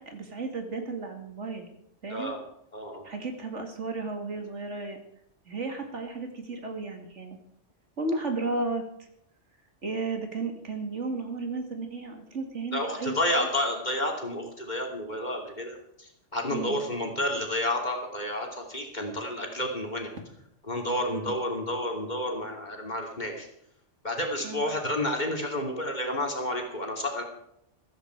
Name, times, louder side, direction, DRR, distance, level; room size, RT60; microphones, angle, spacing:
voice 1, 0.0-1.7 2.0-2.3 3.0-5.0 5.5-7.4 8.0-8.8 9.8-13.5 16.5-16.9 21.1-21.3 24.4-24.7, right 3 dB, 70° right, 5 dB, 2.6 m, -34 dB
voice 2, 2.1-2.4 2.7-3.0 12.7-20.1 20.7-23.5 24.0-27.2, left 1 dB, 35° left, 2 dB, 3.1 m, -30 dB
15.0 x 14.0 x 4.7 m, 0.75 s
omnidirectional pair, 1.3 m